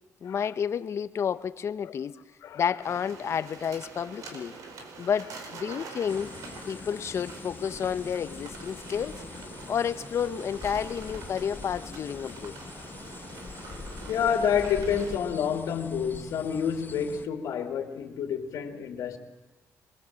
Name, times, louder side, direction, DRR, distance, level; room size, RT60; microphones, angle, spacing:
voice 1, 0.2-2.2 2.5-4.6 5.0-6.3 6.7-9.2 9.7-12.6, left 7 dB, 55° left, 1.0 m, -30 dB
sound 1, 2.8-15.2, right 4 dB, 85° right, 4.7 m, -45 dB
sound 2, 6.1-17.3, left 4 dB, 35° left, 1.3 m, -44 dB
voice 2, 14.1-19.2, left 7 dB, 85° left, 3.0 m, -29 dB
27.0 x 22.0 x 7.7 m
cardioid pair, 115°, 6 cm